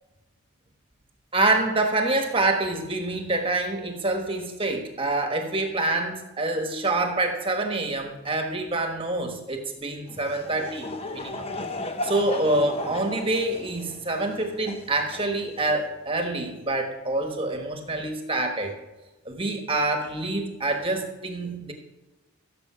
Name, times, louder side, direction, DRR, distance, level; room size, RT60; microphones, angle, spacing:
voice 1, 1.3-11.5 12.0-18.7 19.2-21.7, right 2 dB, 25° right, 4 dB, 1.3 m, -26 dB
Laughter / Crowd, 10.1-15.8, left 2 dB, 25° left, 0.7 m, -36 dB
16.0 x 7.0 x 5.7 m, 1.1 s
head